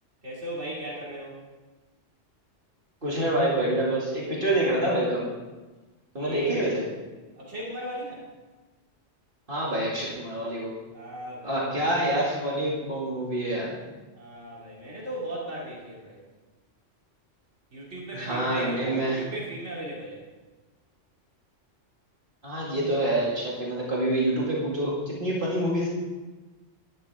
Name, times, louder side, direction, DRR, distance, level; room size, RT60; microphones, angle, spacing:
voice 1, 0.2-1.4 6.2-6.7 7.4-8.2 10.9-12.2 14.1-16.2 17.7-20.2, right 1 dB, 70° right, -5 dB, 2.9 m, -37 dB
voice 2, 3.0-5.3 6.1-6.8 9.5-10.7 11.4-13.7 18.1-19.2 22.4-25.9, right 1 dB, 45° right, -6 dB, 2.5 m, -26 dB
12.0 x 10.5 x 3.6 m, 1.2 s
omnidirectional pair, 1.3 m